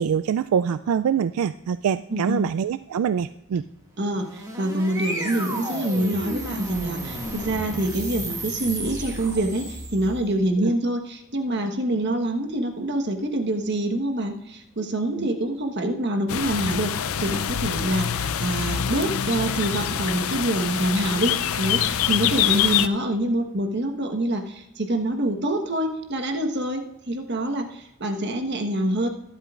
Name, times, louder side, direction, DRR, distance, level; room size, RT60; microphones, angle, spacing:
voice 1, 0.0-3.6 10.6-10.7 15.2-15.3, right 7 dB, 80° right, 12 dB, 0.3 m, -24 dB
voice 2, 2.1-2.4 4.0-29.1, right 1 dB, 50° right, 4 dB, 1.3 m, -26 dB
sound 1, 4.0-10.3, right 1 dB, 15° right, 1.8 m, -33 dB
sound 2, 16.3-22.9, left 9 dB, 75° left, 0.5 m, -25 dB
22.0 x 8.3 x 2.5 m, 0.84 s
head